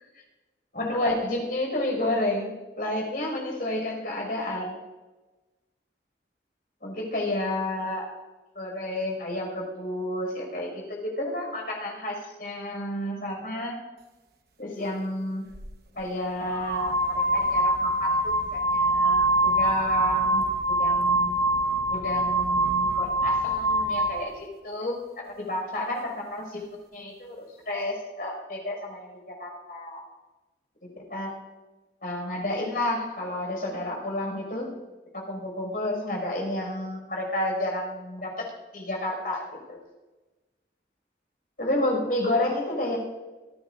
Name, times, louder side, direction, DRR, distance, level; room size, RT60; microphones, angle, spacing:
voice 1, 0.7-4.8 6.8-8.1 8.5-13.8 14.6-15.5 15.9-21.4 21.9-26.6 26.9-30.0 30.8-31.3 32.0-34.7 35.1-38.5 38.7-39.8 41.6-43.0, left 1 dB, 55° left, -1 dB, 5.9 m, -31 dB
sound 1, 15.5-15.7 16.5-24.2, right 1 dB, 60° right, 1.3 m, -24 dB
27.0 x 16.0 x 2.6 m, 1.2 s
head